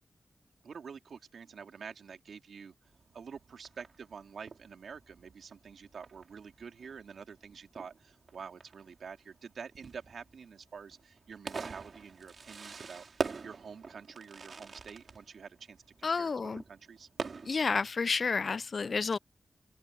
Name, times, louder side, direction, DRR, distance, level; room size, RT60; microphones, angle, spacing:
voice 1, 0.6-2.7 3.1-17.1, right 6 dB, 80° right, 2.8 m, -48 dB
Fireworks, 2.8-17.9, right 4 dB, 65° right, 4.7 m, -45 dB
voice 2, 16.0-16.6 17.5-19.2, left 4 dB, 60° left, 0.3 m, -30 dB
open air
cardioid pair, 45°, 0 cm